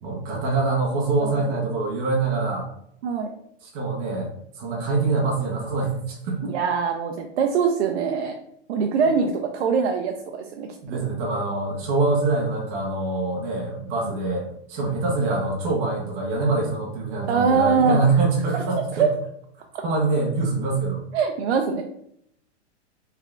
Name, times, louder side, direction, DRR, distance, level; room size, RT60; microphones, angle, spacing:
voice 1, 0.0-2.7 3.6-4.3 4.6-6.5 10.8-19.1 19.8-21.0, right 3 dB, 30° right, -3 dB, 0.8 m, -24 dB
voice 2, 6.5-8.3 8.7-11.0 14.0-14.1 17.3-18.0 18.5-18.6 19.0-19.1 19.7-19.8 21.1-21.8, right 6 dB, 65° right, 3 dB, 0.5 m, -23 dB
3.6 x 3.3 x 2.3 m, 0.71 s
supercardioid pair, 160°, 35 cm